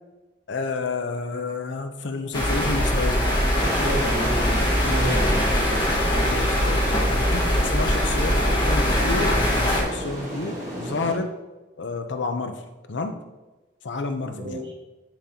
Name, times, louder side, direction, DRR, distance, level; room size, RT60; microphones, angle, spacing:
voice 1, 0.5-3.4 6.2-11.4 11.8-12.6 12.9-13.2 13.8-14.6, left 3 dB, 75° left, 7 dB, 0.6 m, -30 dB
sound 1, 2.3-9.8, equal, 25° left, 1.6 m, -22 dB
sound 2, 3.6-11.2, equal, 40° right, 1.4 m, -33 dB
voice 2, 3.8-5.5 6.1-6.4 14.3-14.7, right 1 dB, 80° right, 0 dB, 1.4 m, -31 dB
10.5 x 3.8 x 2.9 m, 1.1 s
head